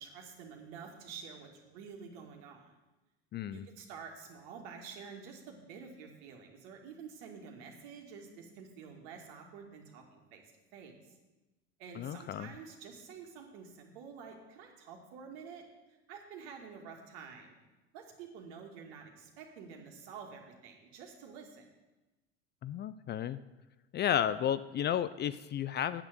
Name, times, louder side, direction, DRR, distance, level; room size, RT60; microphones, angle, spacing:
voice 1, 0.0-2.7 3.5-10.4 10.7-11.2 11.8-15.6 15.9-17.6 17.9-21.6, right 6 dB, 70° right, 1 dB, 2.3 m, -49 dB
voice 2, 3.3-3.6 12.0-12.5 22.6-23.4 23.9-26.0, left 10 dB, 30° left, 14 dB, 0.4 m, -32 dB
8.9 x 6.9 x 8.2 m, 1.1 s
hypercardioid pair, 80°, 34 cm